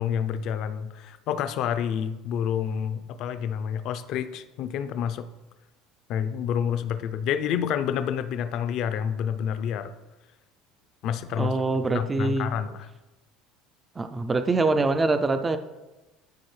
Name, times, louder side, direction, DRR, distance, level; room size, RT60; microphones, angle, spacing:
voice 1, 0.0-5.2 6.1-9.9 11.0-11.5 11.9-12.9, left 8 dB, 50° left, 11 dB, 0.5 m, -28 dB
voice 2, 11.4-12.5 14.0-15.6, right 3 dB, 15° right, 9 dB, 0.3 m, -24 dB
13.0 x 4.8 x 3.2 m, 1.1 s
cardioid pair, 160°, 0 cm